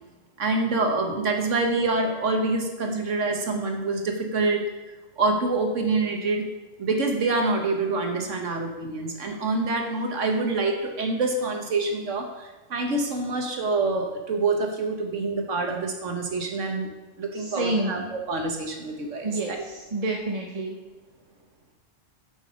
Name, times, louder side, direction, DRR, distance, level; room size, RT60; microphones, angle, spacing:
voice 1, 0.4-4.6 5.2-6.5 6.8-16.9 17.2-19.6, right 3 dB, 85° right, 3 dB, 1.6 m, -26 dB
voice 2, 17.3-18.1 19.2-20.8, right 2 dB, 35° right, 1 dB, 0.8 m, -29 dB
12.0 x 6.1 x 5.1 m, 1.1 s
omnidirectional pair, 1.2 m